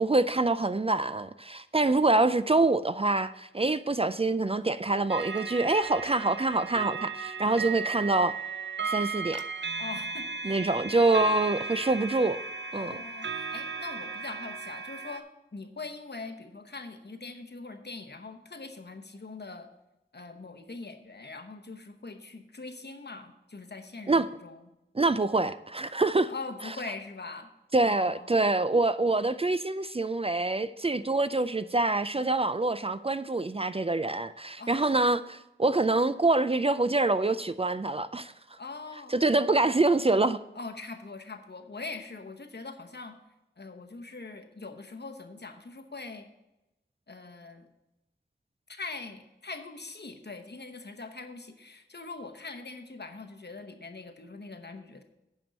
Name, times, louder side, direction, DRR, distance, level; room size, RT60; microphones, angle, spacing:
voice 1, 0.0-8.3 8.9-9.5 10.4-12.4 12.7-13.0 24.1-24.3 25.0-26.3 27.7-38.3 39.1-40.4, right 2 dB, 30° right, 0.3 m, -25 dB
sound 1, 5.1-15.2, right 5 dB, 70° right, 0.6 m, -36 dB
voice 2, 9.8-10.7 12.7-19.7 20.1-24.7 26.3-27.5 27.8-28.3 34.6-35.2 38.6-39.2 40.5-43.2 43.6-46.3 47.1-47.7 48.7-55.0, left 3 dB, 60° left, 1.0 m, -42 dB
8.9 x 5.3 x 6.3 m
wide cardioid pair, 50°, 20 cm